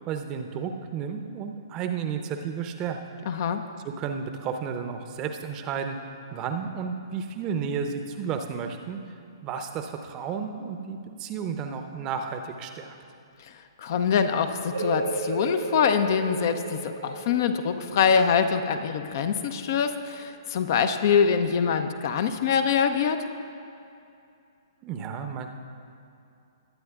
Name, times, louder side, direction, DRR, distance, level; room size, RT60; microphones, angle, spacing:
voice 1, 0.0-3.0 3.8-6.0 6.3-9.0 9.4-13.0 24.8-25.5, right 6 dB, 25° right, 6 dB, 0.7 m, -32 dB
voice 2, 3.3-3.6 13.8-23.2, left 6 dB, 45° left, 8 dB, 0.6 m, -24 dB
sound 1, 14.7-20.1, right 3 dB, 70° right, 1.2 m, -35 dB
20.5 x 9.4 x 2.4 m, 2.6 s
figure-of-eight pair, 120°, 2 cm